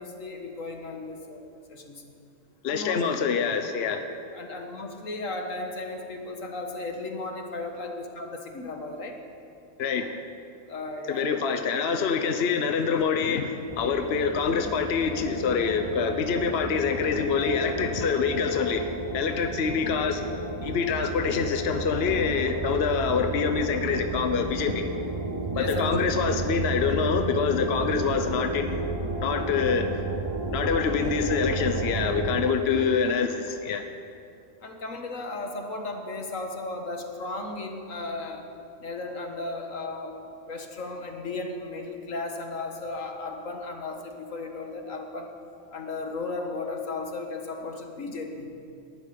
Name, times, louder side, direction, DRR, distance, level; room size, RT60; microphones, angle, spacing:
voice 1, 0.0-2.0 2.7-3.2 4.3-9.2 10.7-11.4 25.5-26.2 34.6-38.4 38.8-40.2 40.5-45.3 45.7-48.5, left 2 dB, 80° left, 3 dB, 2.0 m, -35 dB
voice 2, 2.6-4.1 9.8-10.1 11.1-18.9 19.1-20.2 20.6-24.9 25.6-28.8 29.2-29.9 30.5-33.9, left 6 dB, 55° left, 7 dB, 1.0 m, -26 dB
sound 1, 13.7-32.5, right 2 dB, 20° right, 0.9 m, -32 dB
19.5 x 12.0 x 5.2 m, 2.6 s
omnidirectional pair, 1.3 m